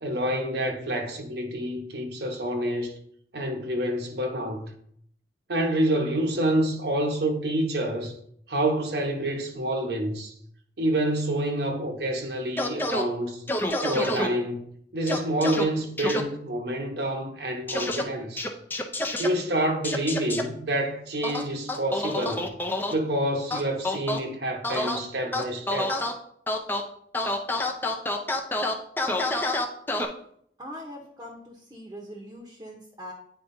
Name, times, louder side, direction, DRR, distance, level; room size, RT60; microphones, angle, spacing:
voice 1, 0.0-2.9 3.3-4.7 5.5-8.1 8.5-10.3 10.8-13.5 13.8-14.7 14.9-18.5 19.2-22.5 22.9-26.0, right 1 dB, 70° right, 1.0 m, -28 dB
sound 1, 12.6-13.0 13.5-14.3 15.1-15.6 16.0-16.2 17.7-18.0 18.4-19.3 19.8-20.4 21.2-22.9 23.5-24.2 24.6-25.0 25.3-26.1 26.5-26.8 27.1-30.0, left 1 dB, 10° left, 0.5 m, -27 dB
voice 2, 30.6-33.1, equal, 20° right, 0.9 m, -42 dB
9.0 x 4.5 x 2.7 m
head